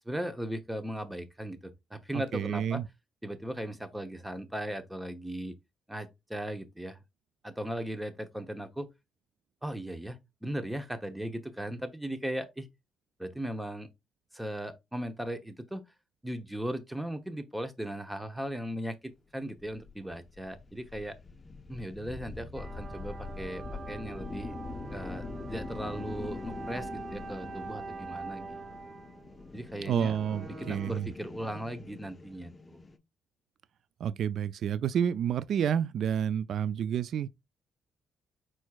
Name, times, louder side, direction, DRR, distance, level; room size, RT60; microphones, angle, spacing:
voice 1, 0.0-2.8 3.2-5.5 5.9-7.0 7.4-8.9 9.6-12.7 13.2-13.9 14.3-15.9 16.2-21.2 21.7-24.5 24.9-28.6 29.5-30.1 30.5-32.8, right 1 dB, 5° right, 0.9 m, -37 dB
voice 2, 2.1-2.8 29.9-31.1 34.0-37.3, right 9 dB, 65° right, 0.3 m, -29 dB
sound 1, 19.6-33.0, left 3 dB, 30° left, 0.6 m, -44 dB
sound 2, 22.5-31.0, right 4 dB, 45° right, 0.7 m, -44 dB
4.5 x 4.4 x 2.4 m
cardioid pair, 90°, 0 cm